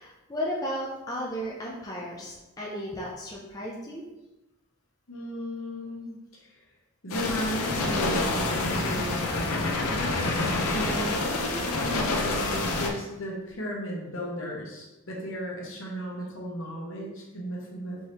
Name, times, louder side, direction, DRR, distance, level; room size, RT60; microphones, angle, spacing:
voice 1, 0.0-4.0, equal, 15° left, -4 dB, 0.5 m, -34 dB
voice 2, 5.1-6.6 7.0-10.1 10.7-18.0, equal, 65° left, -3 dB, 1.0 m, -35 dB
sound 1, 7.1-12.9, left 2 dB, 90° left, 0.6 m, -27 dB
4.6 x 3.2 x 2.9 m, 1.0 s
head